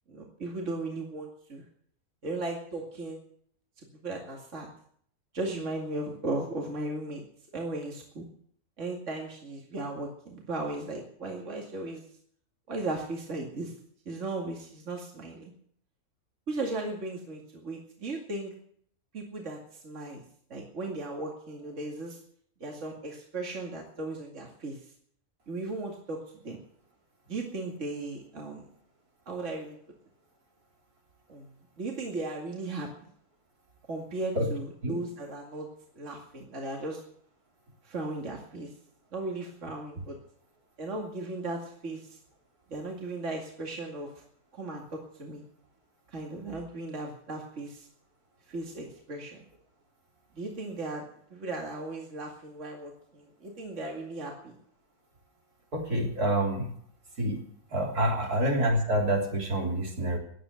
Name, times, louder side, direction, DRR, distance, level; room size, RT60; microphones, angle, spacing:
voice 1, 0.1-1.6 2.2-3.2 4.0-4.7 5.3-7.2 7.5-8.3 8.8-12.0 12.7-13.7 14.1-15.5 16.5-18.5 19.1-19.6 19.8-20.2 20.5-22.2 22.6-24.7 25.5-26.2 26.4-26.6 27.3-28.7 29.3-29.8 31.3-31.5 31.8-32.9 33.9-35.7 35.9-37.0 37.8-38.7 39.1-40.2 40.8-42.0 42.7-44.1 44.5-45.4 46.1-47.8 48.5-49.4 50.4-51.1 51.3-54.6, right 2 dB, 50° right, 0 dB, 2.6 m, -36 dB
voice 2, 55.7-56.7 57.2-57.4 57.7-60.2, right 1 dB, 80° right, 0 dB, 4.1 m, -27 dB
15.5 x 10.5 x 8.2 m, 0.63 s
omnidirectional pair, 1.6 m